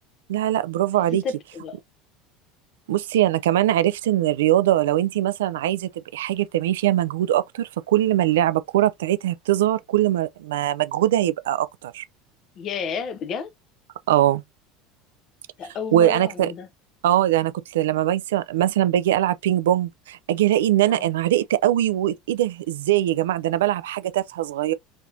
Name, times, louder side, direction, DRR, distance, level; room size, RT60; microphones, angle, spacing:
voice 1, 0.3-1.2 2.9-12.0 14.1-14.4 15.9-16.5 17.0-24.7, right 13 dB, 75° right, 0.3 m, -21 dB
voice 2, 1.2-1.8 12.6-13.5 15.6-16.7 20.9-21.1, left 6 dB, 45° left, 0.7 m, -31 dB
4.1 x 2.9 x 2.6 m
hypercardioid pair, 75°, 0 cm